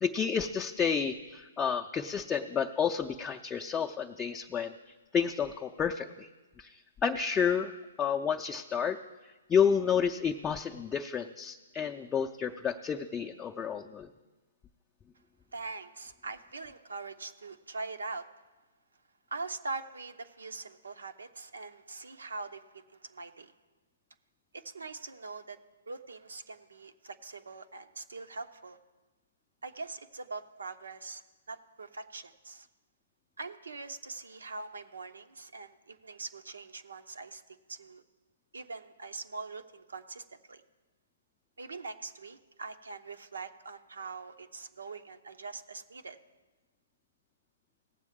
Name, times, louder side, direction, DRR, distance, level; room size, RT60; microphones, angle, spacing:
voice 1, 0.0-4.7 5.1-6.3 6.6-7.7 8.0-9.0 9.5-14.1, left 7 dB, 15° left, 3 dB, 0.4 m, -30 dB
voice 2, 15.5-18.3 19.3-23.5 24.5-25.6 25.9-28.8 29.6-31.2 31.5-32.7 33.4-37.4 37.7-38.0 38.5-40.6 41.6-46.2, right 3 dB, 85° right, 8 dB, 0.8 m, -42 dB
18.0 x 7.5 x 3.7 m, 1.2 s
hypercardioid pair, 135°, 0 cm